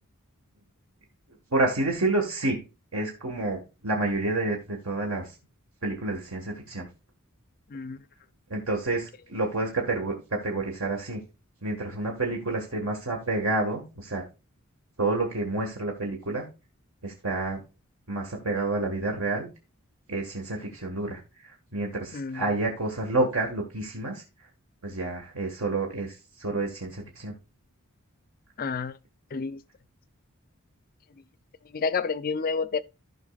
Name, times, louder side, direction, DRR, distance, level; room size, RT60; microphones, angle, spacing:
voice 1, 1.5-2.6 2.9-5.3 5.8-6.9 8.5-10.2 10.4-11.2 11.6-14.2 15.0-16.4 17.0-17.6 18.1-19.5 20.1-24.2 24.8-27.3, right 2 dB, 70° right, 1.6 m, -29 dB
voice 2, 22.1-22.4 28.6-28.9 29.3-29.6 31.7-32.8, left 5 dB, 40° left, 0.5 m, -29 dB
15.5 x 5.5 x 2.4 m
head